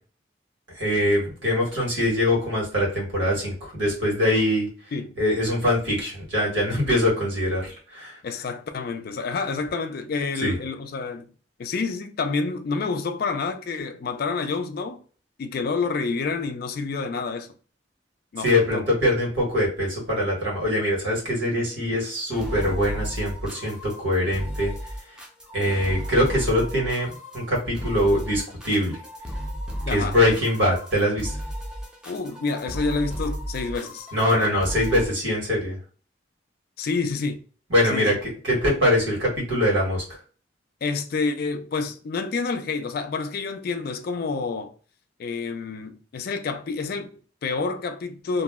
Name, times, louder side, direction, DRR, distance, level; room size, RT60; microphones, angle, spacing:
voice 1, 0.7-4.7 5.2-8.2 10.4-10.5 18.4-24.7 25.5-27.1 27.3-29.0 29.9-31.4 34.1-35.8 37.7-40.2, left 1 dB, 85° right, 1.4 m, -23 dB
voice 2, 8.2-11.3 11.6-15.0 15.4-17.5 18.3-18.8 29.9-30.2 32.0-34.5 36.8-37.4 37.9-38.2 40.8-44.7 45.2-48.4, left 4 dB, 55° left, 0.3 m, -28 dB
sound 1, 22.3-35.1, equal, 5° right, 0.5 m, -34 dB
2.5 x 2.0 x 3.5 m
head